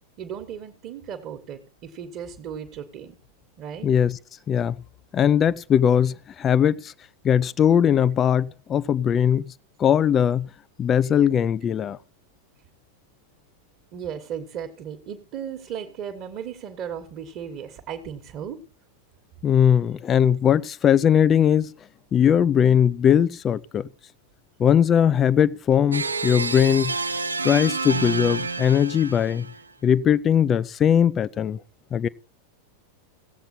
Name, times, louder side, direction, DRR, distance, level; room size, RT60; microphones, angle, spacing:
voice 1, 0.2-3.2 3.6-3.9 13.9-18.6, right 8 dB, 40° right, 1.4 m, -36 dB
voice 2, 3.8-4.2 4.5-4.8 5.1-6.9 7.2-9.5 9.8-10.5 10.8-12.0 19.4-21.7 22.1-23.9 24.6-27.0 27.4-29.5 29.8-31.6 31.9-32.1, left 8 dB, 25° left, 0.5 m, -20 dB
sound 1, 25.9-29.6, right 4 dB, 80° right, 0.6 m, -29 dB
17.0 x 7.8 x 4.2 m
figure-of-eight pair, 90°, 0 cm